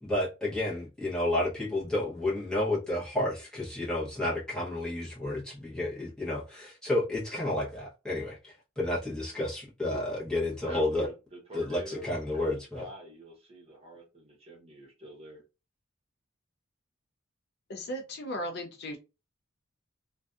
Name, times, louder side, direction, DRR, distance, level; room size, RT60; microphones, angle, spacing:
voice 1, 0.0-11.1 11.5-12.9, left 1 dB, 5° left, 0.9 m, -31 dB
voice 2, 10.6-11.1 11.5-15.4, equal, 30° right, 0.9 m, -46 dB
voice 3, 17.7-19.0, equal, 50° left, 0.4 m, -36 dB
2.5 x 2.2 x 2.4 m
head